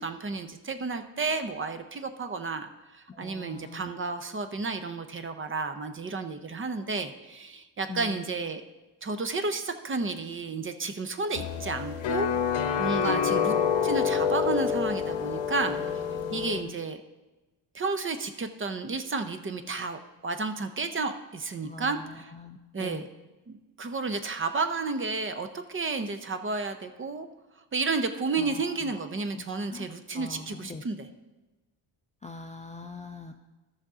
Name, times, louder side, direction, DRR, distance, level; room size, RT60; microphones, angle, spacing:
voice 1, 0.0-8.6 9.0-12.3 12.6-13.6 13.8-15.8 16.3-17.0 17.7-22.3 22.7-23.1 23.5-27.3 27.7-31.1, right 3 dB, 25° right, 8 dB, 0.6 m, -32 dB
voice 2, 3.1-3.9 7.9-8.3 13.0-13.7 15.7-16.8 21.6-23.0 28.4-30.8 32.2-33.3, left 3 dB, 15° left, 3 dB, 0.3 m, -43 dB
sound 1, 11.3-16.6, left 7 dB, 70° left, 0.9 m, -27 dB
13.0 x 6.4 x 3.7 m, 1.1 s
cardioid pair, 110°, 47 cm